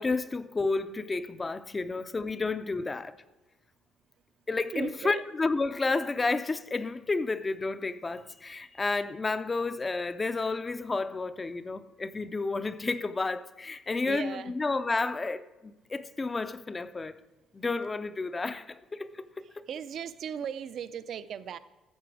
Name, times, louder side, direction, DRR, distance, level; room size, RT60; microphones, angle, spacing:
voice 1, 0.0-3.2 4.5-17.2 17.5-19.3 19.5-19.6, left 3 dB, 15° left, 0.5 m, -31 dB
voice 2, 4.7-5.2 12.2-12.3 14.0-14.5 19.4-21.6, right 8 dB, 50° right, 0.5 m, -37 dB
13.5 x 7.7 x 4.7 m
cardioid pair, 155°, 0 cm